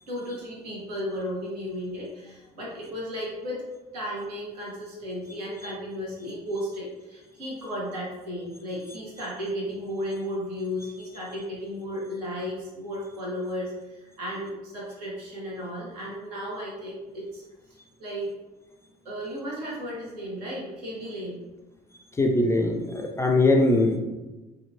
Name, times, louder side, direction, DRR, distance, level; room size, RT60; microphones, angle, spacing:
voice 1, 0.1-3.6 3.9-17.4 18.0-18.3 19.0-21.4, equal, 75° right, -4 dB, 0.9 m, -34 dB
voice 2, 22.2-24.0, left 2 dB, 15° left, 2 dB, 0.3 m, -21 dB
2.8 x 2.3 x 2.5 m, 1.1 s
figure-of-eight pair, 50°, 20 cm